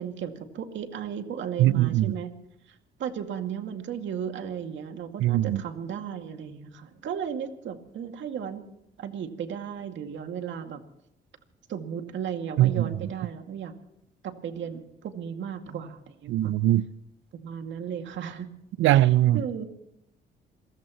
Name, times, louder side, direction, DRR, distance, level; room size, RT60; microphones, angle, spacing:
voice 1, 0.0-2.3 3.0-8.6 9.0-10.8 11.7-13.7 14.2-16.5 17.4-18.5 18.9-19.7, right 8 dB, 70° right, 2.3 m, -35 dB
voice 2, 1.6-2.1 5.2-5.6 12.6-12.8 16.3-16.8 18.8-19.4, right 14 dB, 85° right, 0.6 m, -21 dB
28.0 x 15.5 x 3.1 m
cardioid pair, 90°, 20 cm